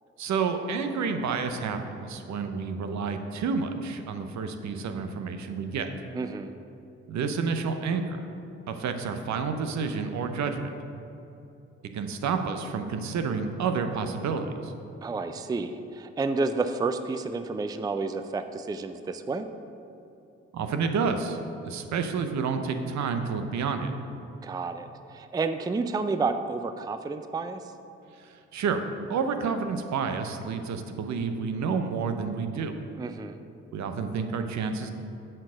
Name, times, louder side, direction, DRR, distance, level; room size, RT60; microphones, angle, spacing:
voice 1, 0.2-5.9 7.1-8.2 8.7-10.7 11.9-14.7 20.5-21.4 21.6-23.9 28.2-28.8 29.1-32.7 33.7-34.9, right 5 dB, 65° right, 7 dB, 0.7 m, -29 dB
voice 2, 6.1-6.5 15.0-19.5 24.4-27.6 33.0-33.4, right 3 dB, 15° right, 9 dB, 0.4 m, -30 dB
7.9 x 4.4 x 6.3 m, 2.8 s
supercardioid pair, 50°, 31 cm